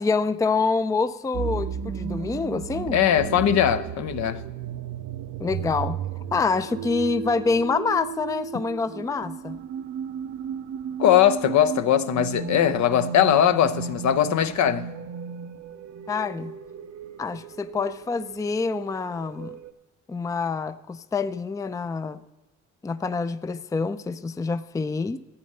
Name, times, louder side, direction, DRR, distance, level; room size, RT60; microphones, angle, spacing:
voice 1, 0.0-3.0 5.4-6.0 6.3-9.6 16.1-16.5 17.2-19.5 20.1-22.2 22.8-25.2, left 4 dB, 10° left, 0.4 m, -26 dB
sound 1, 1.3-19.7, right 7 dB, 60° right, 0.6 m, -34 dB
voice 2, 2.9-4.4 11.0-14.9, left 10 dB, 70° left, 0.7 m, -20 dB
12.5 x 8.5 x 5.4 m
cardioid pair, 90°, 30 cm